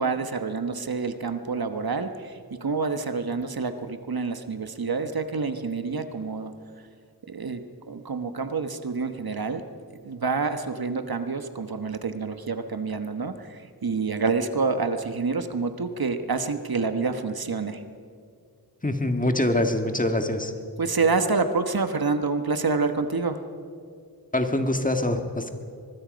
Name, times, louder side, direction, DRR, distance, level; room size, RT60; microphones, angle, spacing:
voice 1, 0.0-6.5 7.3-7.6 7.9-9.6 10.0-17.8 20.8-23.4, right 4 dB, 65° right, 8 dB, 1.3 m, -27 dB
voice 2, 18.8-20.5 24.3-25.5, left 1 dB, 20° left, 5 dB, 1.7 m, -24 dB
24.0 x 21.0 x 5.2 m, 2.2 s
wide cardioid pair, 70°, 40 cm